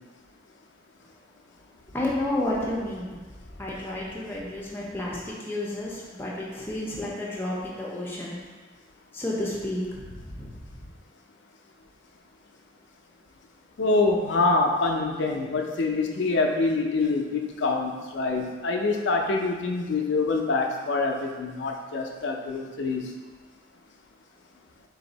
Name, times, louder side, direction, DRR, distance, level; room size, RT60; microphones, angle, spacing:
voice 1, 1.9-3.2 3.6-8.4 9.1-10.5, left 1 dB, 10° left, -5 dB, 0.7 m, -31 dB
voice 2, 13.8-23.1, left 3 dB, 65° left, 2 dB, 0.4 m, -25 dB
4.0 x 2.6 x 4.0 m, 1.4 s
head